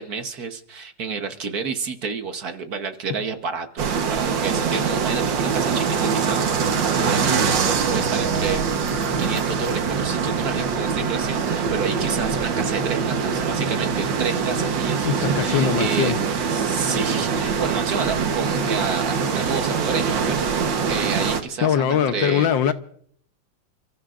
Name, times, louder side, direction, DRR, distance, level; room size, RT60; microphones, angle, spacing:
voice 1, 0.0-6.6 7.0-8.6 9.2-16.2 16.5-20.5 20.9-22.5, right 5 dB, 55° right, 1.5 m, -30 dB
sound 1, 3.8-21.4, right 6 dB, 70° right, 1.9 m, -23 dB
voice 2, 15.0-16.2 21.6-22.7, left 8 dB, 75° left, 1.6 m, -21 dB
29.5 x 15.0 x 2.5 m
omnidirectional pair, 2.1 m